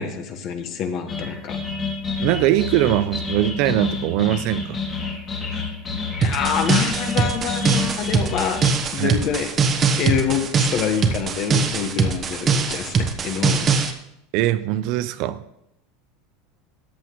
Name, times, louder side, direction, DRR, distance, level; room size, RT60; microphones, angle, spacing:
voice 1, 0.0-1.6 5.5-5.7 6.2-8.6 8.9-9.5 10.0-13.7, left 7 dB, 40° left, 7 dB, 1.4 m, -26 dB
sound 1, 1.1-8.7, left 4 dB, 25° left, 2.1 m, -29 dB
voice 2, 2.2-4.8 9.0-9.2 14.3-15.4, right 14 dB, 55° right, 13 dB, 0.6 m, -21 dB
sound 2, 6.2-13.9, right 5 dB, 25° right, 1.1 m, -22 dB
14.0 x 10.0 x 3.1 m, 0.80 s
supercardioid pair, 150°, 0 cm